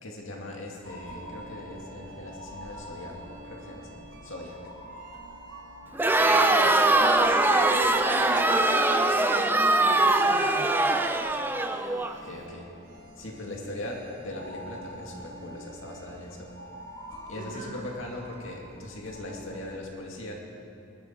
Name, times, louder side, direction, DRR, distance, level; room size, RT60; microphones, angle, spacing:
voice 1, 0.0-4.6 12.2-12.7 13.1-16.5 17.3-20.3, left 1 dB, 60° left, -1 dB, 2.4 m, -40 dB
sound 1, 0.8-19.8, equal, 65° right, 2.3 m, -45 dB
Crowd, 5.9-12.1, right 2 dB, 10° right, 0.5 m, -22 dB
voice 2, 6.2-10.7 17.4-17.7, right 2 dB, 35° right, -1 dB, 2.0 m, -34 dB
21.0 x 12.5 x 4.6 m, 2.6 s
head